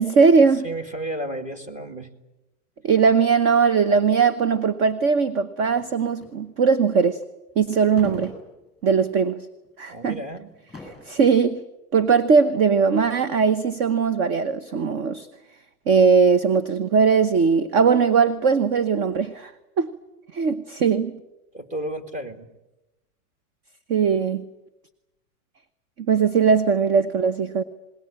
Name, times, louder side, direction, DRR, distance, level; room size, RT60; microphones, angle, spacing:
voice 1, 0.0-0.7 2.8-7.2 7.6-8.3 8.8-9.5 9.8-10.2 11.1-11.6 11.9-15.3 15.9-19.5 19.8-19.9 20.3-21.2 23.9-24.5 26.1-27.6, right 5 dB, 30° right, 13 dB, 1.0 m, -19 dB
voice 2, 0.6-2.1 9.9-10.5 21.5-22.5, right 1 dB, 15° right, 7 dB, 2.2 m, -32 dB
sound 1, 5.7-6.4 7.9-9.1 9.6-9.8 10.5-11.3, left 2 dB, ahead, 7.5 m, -42 dB
27.5 x 21.0 x 8.7 m, 0.96 s
supercardioid pair, 150°, 44 cm